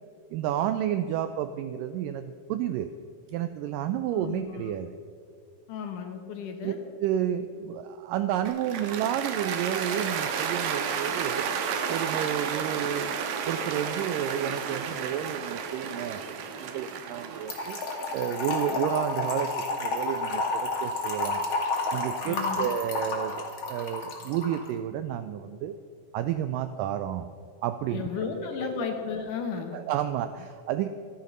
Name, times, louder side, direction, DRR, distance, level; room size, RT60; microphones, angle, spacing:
voice 1, 0.3-2.9 3.3-5.0 6.6-6.7 7.0-11.5 11.9-13.1 13.5-16.2 16.6-17.8 18.1-21.4 21.9-25.8 26.1-27.3 27.6-28.9 29.7-30.9, right 10 dB, 90° right, 10 dB, 1.9 m, -31 dB
voice 2, 4.1-4.6 5.7-6.8 22.2-22.7 27.9-29.8, left 6 dB, 65° left, 5 dB, 2.4 m, -34 dB
Cheering / Applause, 8.5-20.7, right 7 dB, 70° right, 2.6 m, -32 dB
Trickle dribble / Fill (with liquid), 17.5-24.6, left 2 dB, 45° left, 2.8 m, -30 dB
14.5 x 11.5 x 6.5 m, 2.4 s
omnidirectional pair, 4.4 m